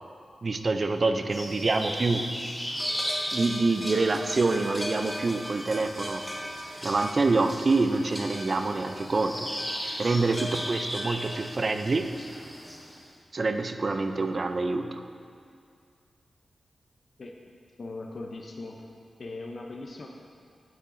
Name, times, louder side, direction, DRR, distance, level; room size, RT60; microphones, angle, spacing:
voice 1, 0.4-2.3 3.3-6.3 6.8-9.5 10.0-12.1 13.3-15.0, right 3 dB, 35° right, 7 dB, 0.3 m, -26 dB
sound 1, 1.3-13.0, equal, 5° left, 0.7 m, -35 dB
voice 2, 17.8-18.9 19.2-20.1, left 2 dB, 40° left, 1 dB, 0.5 m, -39 dB
8.4 x 8.2 x 2.5 m, 2.3 s
wide cardioid pair, 170°, 0 cm